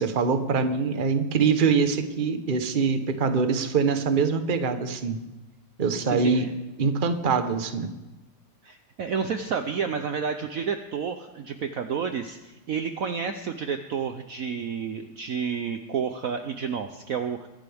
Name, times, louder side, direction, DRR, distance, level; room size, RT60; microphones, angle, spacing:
voice 1, 0.0-5.2 5.8-6.5 6.8-8.0, right 5 dB, 40° right, 8 dB, 0.7 m, -24 dB
voice 2, 6.0-6.5 8.6-17.5, right 6 dB, 75° right, 7 dB, 0.7 m, -30 dB
23.5 x 11.5 x 3.5 m, 1.1 s
omnidirectional pair, 2.4 m